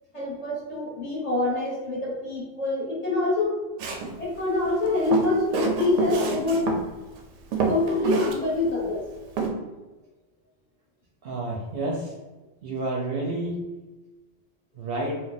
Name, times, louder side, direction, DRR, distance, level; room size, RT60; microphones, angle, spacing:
voice 1, 0.1-3.6 4.2-6.7 7.6-9.1, left 2 dB, 35° left, -7 dB, 0.8 m, -25 dB
Walk footsteps, 3.8-4.1 4.9-6.8 7.2-7.3 7.5-8.4 8.7-8.8 9.4-9.5, right 5 dB, 90° right, 0.9 m, -27 dB
voice 2, 11.2-12.1 12.6-13.6 14.8-15.2, right 2 dB, 60° right, -2 dB, 0.7 m, -29 dB
2.4 x 2.1 x 3.9 m, 1.1 s
omnidirectional pair, 1.3 m